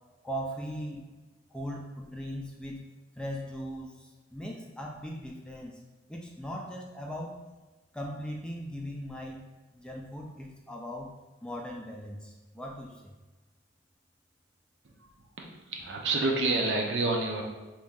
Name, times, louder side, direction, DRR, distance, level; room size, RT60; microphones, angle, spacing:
voice 1, 0.2-1.0 1.5-2.8 3.2-5.8 6.1-7.4 7.9-9.4 9.7-11.1 11.4-13.1, equal, 5° left, -1 dB, 0.4 m, -39 dB
voice 2, 15.5-17.4, right 2 dB, 70° right, 0 dB, 0.6 m, -28 dB
2.9 x 2.7 x 3.6 m, 1.2 s
head